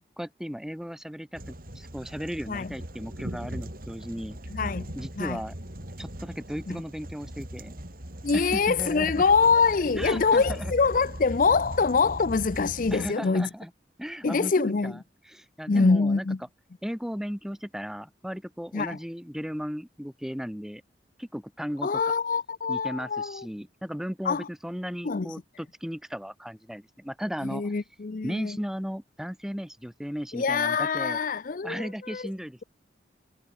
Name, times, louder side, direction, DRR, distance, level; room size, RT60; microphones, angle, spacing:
voice 1, 0.2-4.4 5.0-5.5 6.0-7.8 8.3-9.1 10.0-10.7 12.9-13.7 14.0-16.2 16.8-20.8 21.2-22.0 22.7-27.8 28.2-31.2 31.6-32.6, equal, 5° right, 1.0 m, -36 dB
sound 1, 1.4-13.1, equal, 55° right, 5.3 m, -39 dB
voice 2, 4.5-4.9 5.2-5.4 6.7-6.8 8.2-13.5 14.2-15.0 15.7-16.4 18.7-19.0 21.8-23.5 24.2-24.5 25.0-25.3 27.4-28.6 30.3-32.3, left 4 dB, 50° left, 0.5 m, -25 dB
head